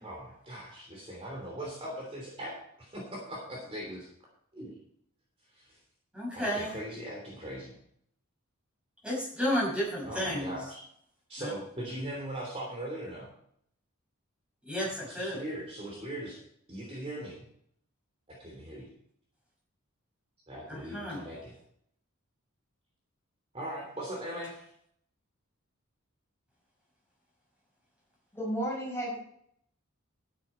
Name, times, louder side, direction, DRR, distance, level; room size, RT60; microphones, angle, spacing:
voice 1, 0.0-2.5 2.8-4.1 4.5-4.8 5.5-5.7 6.3-7.7 10.0-10.8 11.3-13.3 14.8-16.4 16.7-17.4 18.3-18.9 20.5-21.5 23.5-24.6, right 1 dB, 25° right, -2 dB, 3.2 m, -40 dB
voice 2, 6.1-6.7 9.0-10.5 11.4-11.5 14.7-15.4 20.7-21.2, equal, 5° right, -4 dB, 5.8 m, -32 dB
voice 3, 28.3-29.2, equal, 10° left, -4 dB, 5.3 m, -32 dB
12.0 x 9.7 x 4.4 m, 0.67 s
head